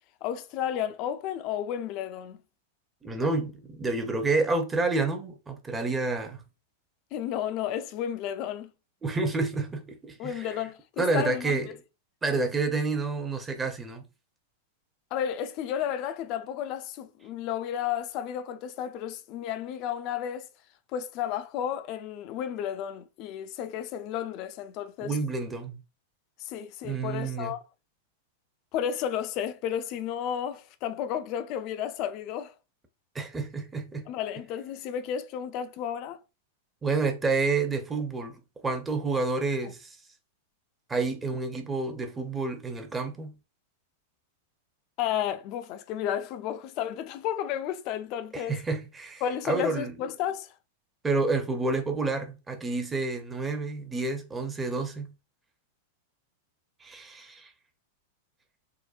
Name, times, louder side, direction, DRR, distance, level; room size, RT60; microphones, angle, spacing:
voice 1, 0.2-2.4 7.1-8.7 10.2-11.7 15.1-20.5 20.9-25.2 26.4-27.6 28.7-32.5 34.1-36.2 39.6-39.7 45.0-48.6 49.2-50.5, left 9 dB, 45° left, 0.4 m, -32 dB
voice 2, 3.0-6.4 9.0-10.5 11.0-11.7 12.2-14.0 25.0-25.8 26.8-27.5 33.1-34.1 36.8-38.4 38.6-40.0 40.9-43.3 48.3-50.0 51.0-55.1 56.8-57.5, right 3 dB, 15° right, 0.7 m, -29 dB
3.7 x 2.1 x 2.4 m
figure-of-eight pair, 95°, 0 cm